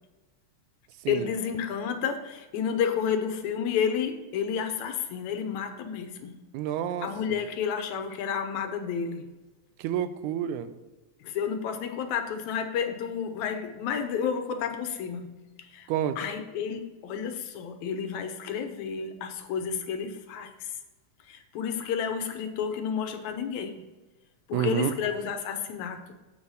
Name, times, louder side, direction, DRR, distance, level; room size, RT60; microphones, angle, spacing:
voice 1, 1.1-6.4 7.0-9.3 11.2-15.9 16.2-20.7 21.3-23.8 24.5-26.1, left 7 dB, 75° left, 7 dB, 2.1 m, -31 dB
voice 2, 6.5-7.1 9.8-10.7 15.9-16.2 24.5-24.9, right 10 dB, 85° right, 12 dB, 2.0 m, -28 dB
7.8 x 5.6 x 4.7 m, 1.2 s
omnidirectional pair, 3.4 m